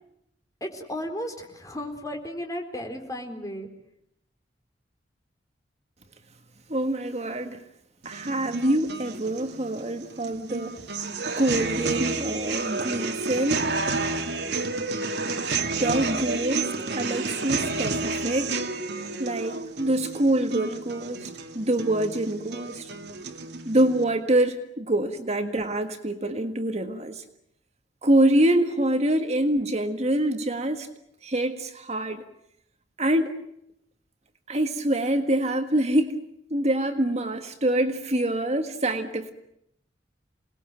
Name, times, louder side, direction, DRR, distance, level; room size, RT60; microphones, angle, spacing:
voice 1, 0.6-3.7, equal, 20° left, 4 dB, 4.1 m, -34 dB
voice 2, 6.7-7.6 8.1-10.8 11.4-13.6 15.7-18.6 19.2-21.3 21.5-22.9 23.7-27.2 28.0-30.9 31.2-32.2 33.0-33.3 34.5-36.2 36.5-39.3, right 1 dB, 40° right, 7 dB, 1.7 m, -25 dB
sound 1, 8.0-24.0, right 3 dB, 65° right, 2.5 m, -30 dB
27.5 x 20.0 x 9.0 m, 0.77 s
head